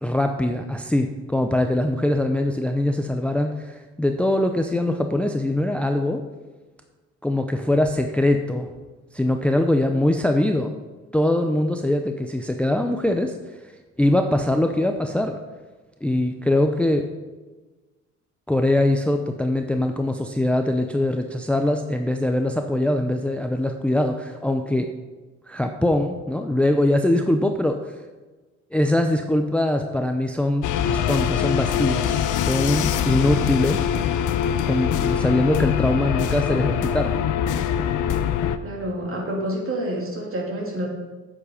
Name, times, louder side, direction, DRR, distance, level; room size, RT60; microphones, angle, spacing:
voice 1, 0.0-6.2 7.2-8.7 9.1-10.7 11.1-13.3 14.0-15.4 16.0-17.1 18.5-24.9 25.5-27.8 28.7-33.9 34.7-37.1, left 1 dB, 5° left, 5 dB, 0.6 m, -22 dB
sound 1, 30.6-38.6, left 9 dB, 80° left, 0.6 m, -23 dB
voice 2, 38.6-40.9, right 1 dB, 45° right, -1 dB, 2.9 m, -28 dB
8.0 x 7.5 x 5.0 m, 1.2 s
cardioid pair, 90°, 30 cm